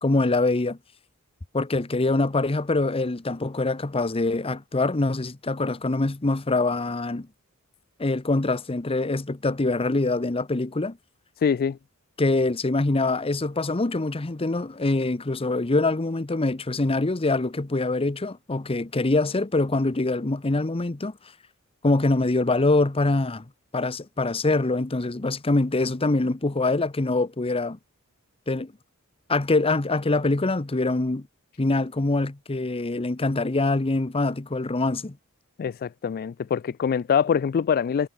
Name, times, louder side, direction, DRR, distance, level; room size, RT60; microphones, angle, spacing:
voice 1, 0.0-0.8 1.5-7.3 8.0-11.0 12.2-21.1 21.8-23.4 23.7-27.8 28.5-28.7 29.3-31.3 31.6-35.2, left 2 dB, 25° left, 0.8 m, -24 dB
voice 2, 11.4-11.8 35.6-38.1, left 7 dB, 40° left, 0.3 m, -24 dB
head